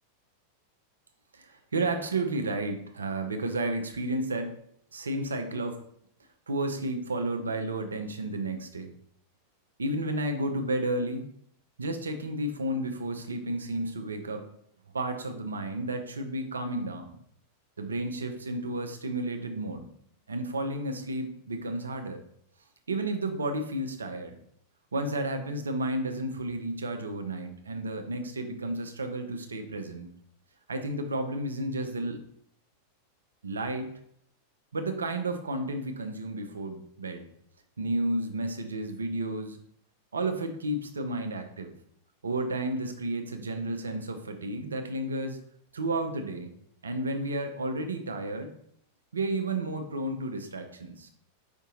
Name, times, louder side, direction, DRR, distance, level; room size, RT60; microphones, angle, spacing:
voice 1, 1.3-4.5 4.9-5.8 6.5-8.9 9.8-11.3 11.8-14.4 14.9-17.2 17.8-19.9 20.3-22.2 22.9-24.4 24.9-30.1 30.7-32.2 33.4-33.9 34.7-37.3 37.8-39.6 40.1-41.7 42.2-45.4 45.7-46.5 46.8-48.5 49.1-51.1, right 2 dB, 75° right, 6 dB, 0.5 m, -32 dB
5.1 x 2.7 x 3.8 m, 0.69 s
figure-of-eight pair, 90°, 0 cm